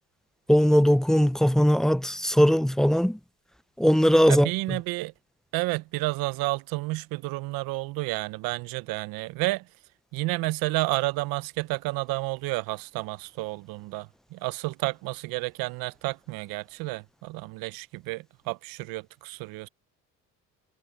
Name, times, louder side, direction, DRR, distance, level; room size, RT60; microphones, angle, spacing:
voice 1, 0.5-3.2 3.8-4.8, equal, ahead, 0.4 m, -20 dB
voice 2, 4.3-5.1 5.5-9.7 10.1-19.7, right 21 dB, 80° right, 0.8 m, -31 dB
supercardioid pair, 70°, 35 cm